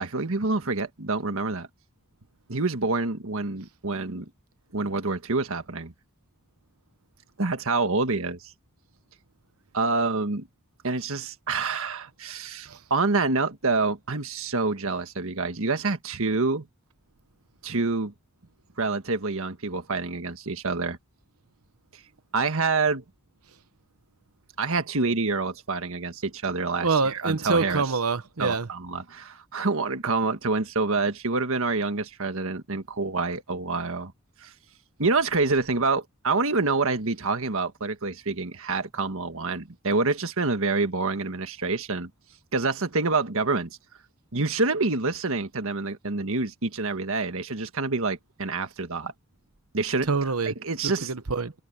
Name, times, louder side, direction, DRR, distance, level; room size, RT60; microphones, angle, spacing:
voice 1, 0.0-1.7 2.5-4.3 4.7-5.9 7.4-8.5 9.7-10.5 10.8-16.7 17.6-18.1 18.8-21.0 22.3-23.0 24.6-28.0 28.4-34.1 34.4-34.5 35.0-42.1 42.5-43.8 44.3-49.1 49.7-50.1 50.4-51.1, right 3 dB, 65° right, 1.6 m, -27 dB
voice 2, 26.8-28.7 50.1-50.5 50.8-51.5, right 4 dB, 85° right, 1.1 m, -25 dB
head